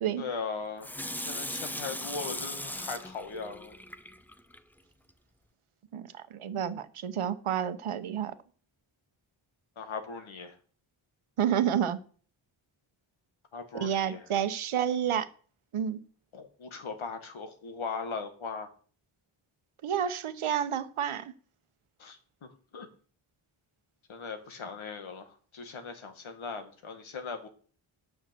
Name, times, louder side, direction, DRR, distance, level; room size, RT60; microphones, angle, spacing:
voice 1, 0.2-3.8 9.8-10.6 13.5-14.3 16.3-18.7 22.0-22.2 22.7-22.9 24.1-27.5, left 4 dB, 75° left, 1.7 m, -39 dB
Water tap faucet / Sink (filling or washing), 0.8-4.6 5.1-5.2, left 1 dB, 5° left, 0.3 m, -38 dB
voice 2, 5.9-8.3 11.4-12.0 13.8-15.3 15.7-16.0 19.8-21.3, right 9 dB, 90° right, 0.9 m, -30 dB
9.1 x 5.7 x 6.8 m
wide cardioid pair, 160°, 49 cm